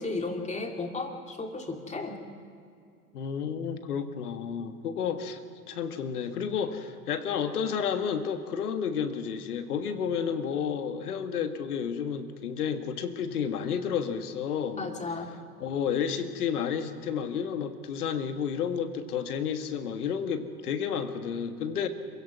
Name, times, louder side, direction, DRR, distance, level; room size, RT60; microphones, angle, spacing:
voice 1, 0.0-2.2 14.8-15.3, left 3 dB, 15° left, 3 dB, 2.6 m, -34 dB
voice 2, 3.1-5.4 5.7-15.0 15.6-21.9, left 7 dB, 70° left, 8 dB, 1.7 m, -31 dB
27.0 x 16.0 x 6.1 m, 2.3 s
hypercardioid pair, 90°, 47 cm